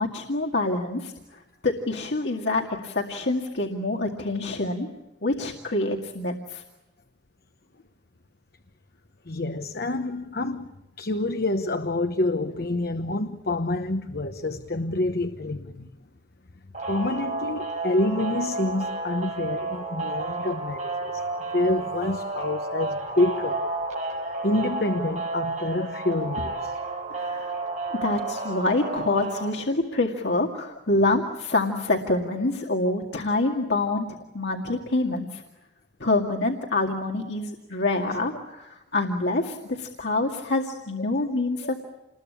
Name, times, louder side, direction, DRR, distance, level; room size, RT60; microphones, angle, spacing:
voice 1, 0.0-4.9 5.2-6.6 27.2-27.5 28.0-34.1 34.3-35.4 36.0-41.8, left 2 dB, 80° left, 2.1 m, -26 dB
voice 2, 9.2-15.9 16.9-21.2 21.5-23.7 24.4-26.8, left 2 dB, 60° left, 1.1 m, -27 dB
sound 1, 16.7-29.5, right 2 dB, 45° right, 5.8 m, -31 dB
28.5 x 21.0 x 8.6 m
head